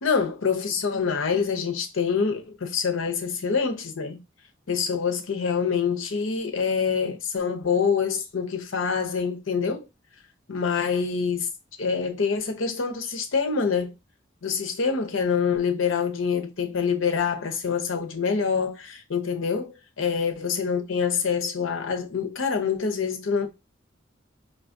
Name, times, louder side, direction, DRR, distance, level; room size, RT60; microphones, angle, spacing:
voice 1, 0.0-4.2 4.7-9.9 10.5-11.5 11.8-13.9 14.4-23.5, left 6 dB, 75° left, 0.7 m, -26 dB
5.0 x 2.3 x 2.5 m
head